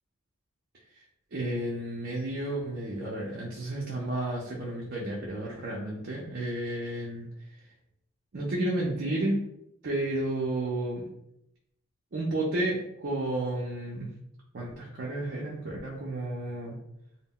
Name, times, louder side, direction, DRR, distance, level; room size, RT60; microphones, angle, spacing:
voice 1, 1.3-7.3 8.3-9.4 9.8-11.1 12.1-14.1 14.5-16.8, right 1 dB, 50° right, -4 dB, 0.4 m, -32 dB
2.1 x 2.1 x 3.6 m, 0.80 s
head